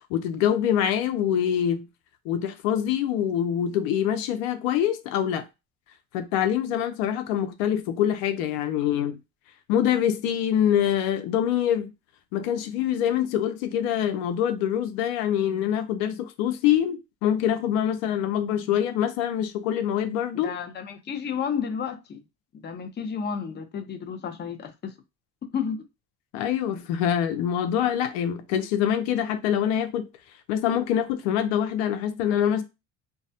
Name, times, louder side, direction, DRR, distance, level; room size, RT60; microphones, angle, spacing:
voice 1, 0.1-1.9 2.3-5.5 6.1-9.2 9.7-11.9 12.3-20.5 26.3-30.1 30.5-32.6, left 10 dB, 80° left, 0.6 m, -25 dB
voice 2, 20.3-22.2 22.5-24.9 25.5-25.8, left 7 dB, 30° left, 0.6 m, -32 dB
2.3 x 2.0 x 2.7 m
supercardioid pair, 80°, 37 cm